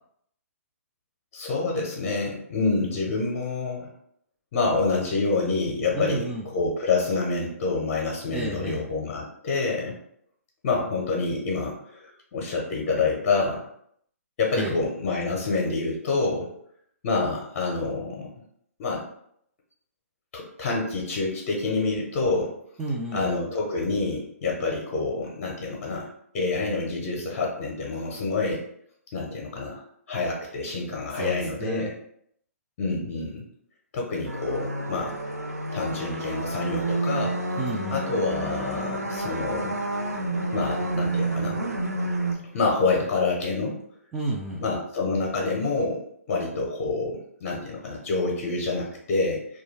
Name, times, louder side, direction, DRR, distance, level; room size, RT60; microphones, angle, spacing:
voice 1, 1.3-3.9 4.5-6.3 6.5-10.0 10.6-13.7 14.4-16.5 17.0-18.3 18.8-19.0 20.3-22.5 23.1-26.1 26.3-28.6 29.1-29.8 30.1-31.9 32.8-33.4 33.9-35.2 35.7-37.4 37.9-39.8 40.5-41.6 42.5-43.8 44.6-49.4, left 3 dB, 40° left, -2 dB, 0.6 m, -27 dB
voice 2, 5.9-6.4 8.3-8.8 14.5-14.8 22.8-23.2 31.1-31.9 37.6-38.0 44.1-44.6, right 2 dB, 10° right, -4 dB, 0.3 m, -31 dB
sound 1, 34.2-42.4, right 2 dB, 90° right, 0.5 m, -29 dB
2.3 x 2.2 x 3.1 m, 0.69 s
figure-of-eight pair, 130°, 8 cm